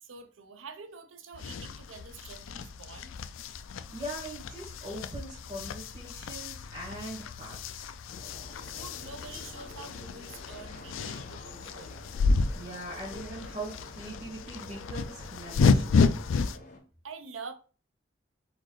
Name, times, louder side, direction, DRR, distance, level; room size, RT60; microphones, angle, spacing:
voice 1, 0.0-3.1 8.7-11.9 17.0-17.5, right 4 dB, 85° right, 0.7 m, -46 dB
sound 1, 1.3-16.6, left 4 dB, 85° left, 0.4 m, -31 dB
voice 2, 3.9-7.9 12.3-16.1, right 1 dB, 30° right, 1.9 m, -41 dB
sound 2, 8.1-16.8, left 1 dB, 40° left, 1.2 m, -49 dB
4.3 x 3.9 x 3.2 m
head